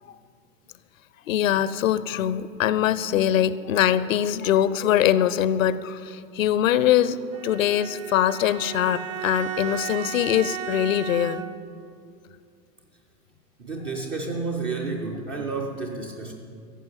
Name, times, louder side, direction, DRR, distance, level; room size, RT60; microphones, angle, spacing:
voice 1, 1.3-11.4, left 10 dB, 55° left, 16 dB, 0.7 m, -23 dB
Bowed string instrument, 7.3-11.8, right 10 dB, 55° right, 1.0 m, -35 dB
voice 2, 13.6-16.3, right 3 dB, 15° right, 0 dB, 0.3 m, -30 dB
14.0 x 7.4 x 9.0 m, 2.3 s
figure-of-eight pair, 95°, 49 cm